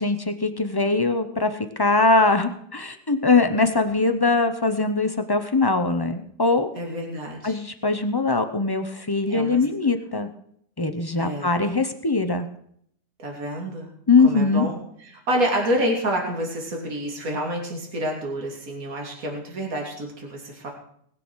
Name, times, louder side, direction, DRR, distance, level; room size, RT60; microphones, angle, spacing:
voice 1, 0.0-6.7 7.4-10.3 10.8-12.5 14.1-14.7, left 3 dB, 30° left, 8 dB, 0.4 m, -21 dB
voice 2, 6.8-7.5 9.3-9.6 11.2-11.6 13.2-13.9 14.2-14.8 15.3-20.7, equal, 50° right, 0 dB, 3.1 m, -28 dB
19.5 x 7.0 x 6.2 m, 0.67 s
omnidirectional pair, 1.9 m